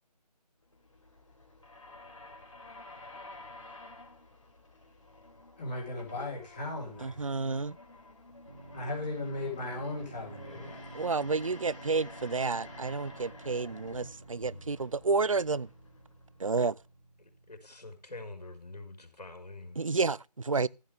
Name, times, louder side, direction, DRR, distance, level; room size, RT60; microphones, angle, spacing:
sound 1, 0.6-17.0, left 2 dB, 50° left, 3.9 m, -51 dB
voice 1, 5.6-7.2 8.7-10.8, left 2 dB, 10° left, 3.0 m, -37 dB
voice 2, 7.0-7.8 10.9-15.7 16.4-16.8 19.8-20.7, right 4 dB, 50° right, 0.5 m, -30 dB
sound 2, 8.5-18.1, right 2 dB, 35° right, 2.7 m, -51 dB
voice 3, 17.2-19.8, left 2 dB, 70° left, 4.6 m, -46 dB
15.0 x 9.2 x 3.4 m
figure-of-eight pair, 180°, 21 cm